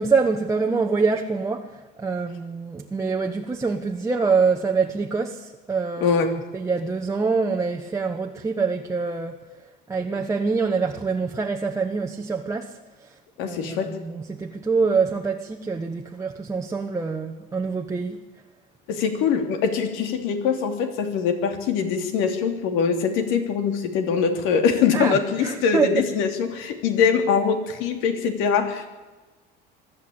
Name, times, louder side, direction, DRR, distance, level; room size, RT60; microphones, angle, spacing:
voice 1, 0.0-1.7 2.0-6.2 6.5-9.3 9.9-12.8 13.4-18.2 24.9-26.0, right 4 dB, 15° right, 1.1 m, -25 dB
voice 2, 6.0-6.3 13.4-13.9 18.9-28.9, left 6 dB, 75° left, 3.3 m, -23 dB
23.5 x 12.5 x 8.8 m
cardioid pair, 140°, 21 cm